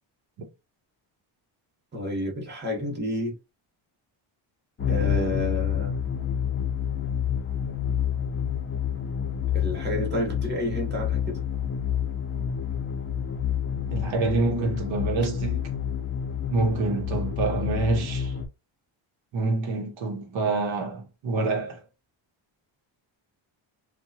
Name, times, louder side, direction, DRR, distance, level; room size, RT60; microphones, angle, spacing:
voice 1, 1.9-3.4 4.9-5.9 9.5-11.4, left 1 dB, 20° right, 1.0 m, -30 dB
sound 1, 4.8-18.5, left 8 dB, 25° left, 0.5 m, -28 dB
voice 2, 13.8-15.7 16.5-18.4 19.3-21.8, right 3 dB, 65° right, 0.9 m, -27 dB
2.8 x 2.2 x 2.7 m
cardioid pair, 170°, 49 cm